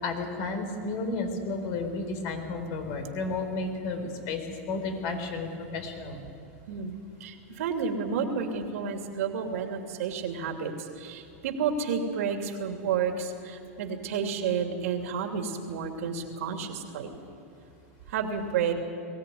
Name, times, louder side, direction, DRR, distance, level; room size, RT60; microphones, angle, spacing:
voice 1, 0.0-6.2, left 3 dB, 55° left, 6 dB, 4.3 m, -32 dB
voice 2, 6.7-17.1 18.1-18.7, right 6 dB, 75° right, 4 dB, 3.0 m, -31 dB
22.0 x 17.0 x 9.5 m, 2.6 s
hypercardioid pair, 120°, 8 cm